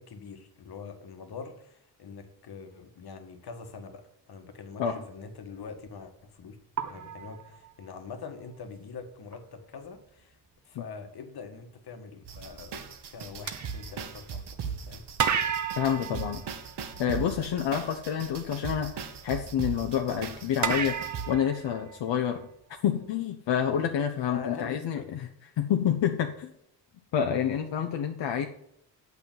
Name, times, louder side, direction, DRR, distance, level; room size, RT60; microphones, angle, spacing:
voice 1, 0.0-6.6 6.9-10.4 10.6-12.8 13.1-15.1 24.3-25.1, left 5 dB, 60° left, 1.6 m, -43 dB
sound 1, 5.6-5.8 6.8-8.1 9.3-9.4 9.8-10.1 13.5-14.7 15.2-17.3 20.6-22.4, right 7 dB, 45° right, 0.9 m, -32 dB
sound 2, 12.2-21.3, right 6 dB, 70° right, 1.4 m, -39 dB
voice 2, 15.8-16.4 17.0-22.5 22.8-25.3 25.6-26.5 27.1-28.5, left 9 dB, 85° left, 0.9 m, -28 dB
8.3 x 5.9 x 7.4 m
cardioid pair, 115°, 43 cm